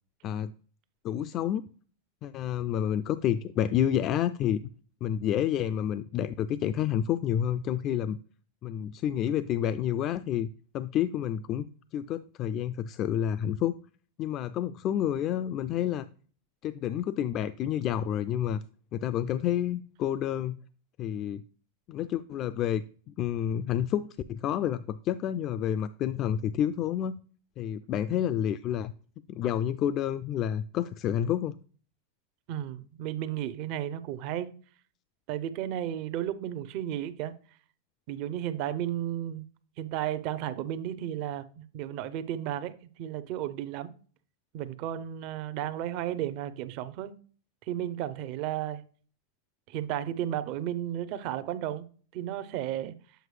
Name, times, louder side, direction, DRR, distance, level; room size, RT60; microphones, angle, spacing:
voice 1, 1.0-1.6 2.2-4.6 5.0-8.2 8.6-10.5 10.7-11.7 11.9-13.8 14.2-16.1 16.6-18.6 18.9-20.6 21.0-21.4 21.9-27.2 27.6-28.9 29.3-31.6, left 10 dB, 40° left, 0.3 m, -29 dB
voice 2, 32.5-34.5 35.3-37.3 38.1-39.4 39.8-42.7 43.0-43.9 44.5-47.1 47.7-48.8 49.7-51.8 52.1-52.9, right 11 dB, 55° right, 0.6 m, -33 dB
7.8 x 4.6 x 3.3 m
hypercardioid pair, 115°, 0 cm